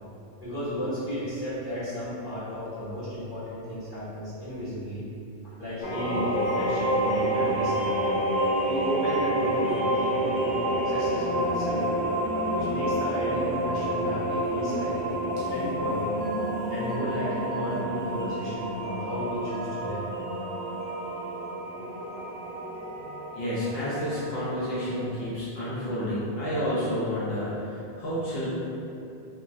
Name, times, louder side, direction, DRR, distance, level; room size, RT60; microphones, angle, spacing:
voice 1, 0.4-5.0 5.4-7.9 8.7-10.5 10.8-11.8 12.6-15.2 15.5-16.0 16.7-20.0 22.1-22.3, equal, 15° right, -16 dB, 1.5 m, -34 dB
sound 1, 5.8-25.1, right 1 dB, 25° left, 0.5 m, -29 dB
voice 2, 23.4-28.5, equal, 70° left, -9 dB, 0.8 m, -30 dB
3.0 x 2.2 x 2.5 m, 2.7 s
omnidirectional pair, 1.1 m